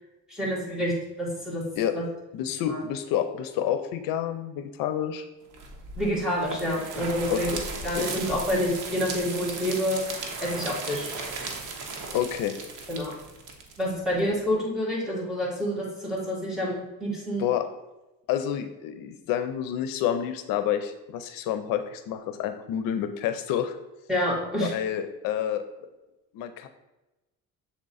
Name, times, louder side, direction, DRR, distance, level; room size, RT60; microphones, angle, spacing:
voice 1, 0.3-0.9 1.2-1.6 1.9-2.0 2.7-2.8 6.0-7.5 7.8-10.0 10.4-11.1 12.9-13.1 13.8-17.5 24.1-24.7, equal, ahead, -6 dB, 2.1 m, -28 dB
voice 2, 2.3-5.2 7.3-7.6 8.0-8.1 12.1-12.5 17.4-17.7 18.3-23.8 24.6-25.9 26.3-26.7, left 10 dB, 80° left, 9 dB, 0.6 m, -29 dB
sound 1, 5.5-14.4, right 4 dB, 65° right, 1.1 m, -37 dB
7.2 x 3.7 x 4.0 m, 1.0 s
cardioid pair, 155°, 33 cm